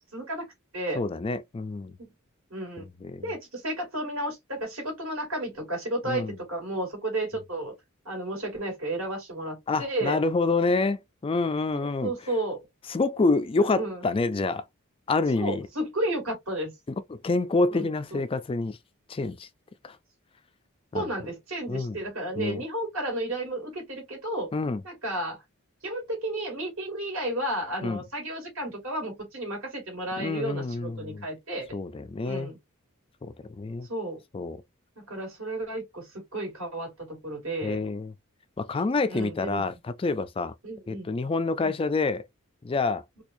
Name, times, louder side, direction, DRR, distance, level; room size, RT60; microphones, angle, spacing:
voice 1, 0.1-0.5 0.7-1.0 2.0-2.1 2.5-2.9 3.2-7.7 8.0-10.2 12.0-12.6 13.7-14.0 15.4-16.7 17.7-18.2 20.9-24.5 24.8-25.4 25.8-31.7 32.2-32.6 33.9-34.2 35.0-37.8 39.1-39.6 40.6-41.1 41.6-41.7, right 1 dB, 65° right, 2.4 m, -32 dB
voice 2, 0.9-2.0 2.8-3.3 6.1-6.4 9.7-12.1 12.9-14.6 15.1-15.6 17.1-18.8 19.1-19.5 19.8-20.0 20.9-21.1 21.7-22.0 22.4-22.6 24.5-24.8 27.8-28.0 30.2-31.3 31.7-32.5 33.2-33.9 34.3-34.6 37.6-38.1 38.6-40.5 40.9-42.3 42.6-43.0, left 3 dB, 25° left, 0.3 m, -27 dB
4.4 x 2.4 x 2.6 m
head